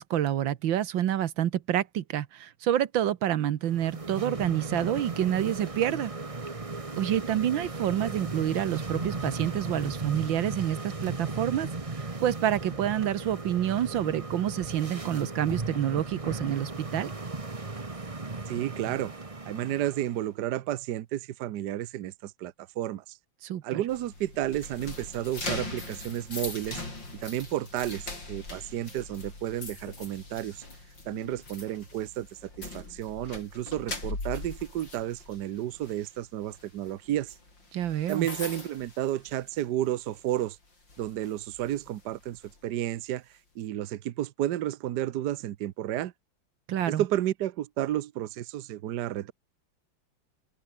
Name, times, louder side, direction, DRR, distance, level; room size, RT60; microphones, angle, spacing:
voice 1, 0.0-6.1 7.0-11.7 12.0-17.1 23.4-23.8 37.7-38.3 46.7-47.0, right 11 dB, 85° right, 1.8 m, -28 dB
sound 1, 3.6-20.3, right 3 dB, 20° right, 1.3 m, -36 dB
voice 2, 18.5-19.1 19.5-23.0 23.6-26.8 27.2-30.6 31.1-32.3 32.6-37.3 38.1-40.6 41.0-43.2 43.6-46.1 46.9-49.3, right 13 dB, 65° right, 1.3 m, -32 dB
sound 2, 23.9-39.8 40.1-40.4 40.9-42.6, left 2 dB, 70° left, 7.1 m, -41 dB
open air
omnidirectional pair, 2.1 m